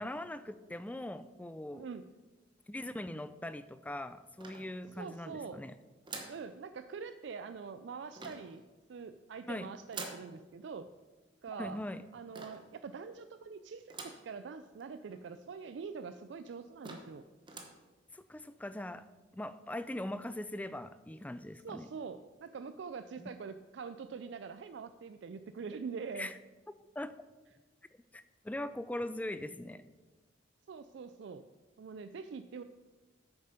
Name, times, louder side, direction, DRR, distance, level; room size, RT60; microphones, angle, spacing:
voice 1, 0.0-1.9 2.7-5.7 9.5-9.7 11.6-12.0 18.1-19.0 19.3-21.9 23.2-23.3 26.1-26.4 27.0-27.1 28.1-29.8, left 1 dB, 10° left, 13 dB, 0.3 m, -41 dB
voice 2, 1.7-2.1 5.0-5.6 6.3-8.6 8.9-10.9 11.4-11.8 12.1-17.2 21.6-26.3 30.7-31.4 31.8-32.6, right 5 dB, 65° right, 10 dB, 0.4 m, -44 dB
sound 1, 4.4-5.1 6.0-6.5 8.1-8.6 9.9-10.3 12.3-12.7 13.9-14.3 14.8-14.9 15.1-15.2 16.0-16.1 16.5-16.6 16.8-17.2 17.4-17.8, right 3 dB, 25° right, 1.1 m, -46 dB
8.6 x 6.8 x 5.2 m, 1.2 s
head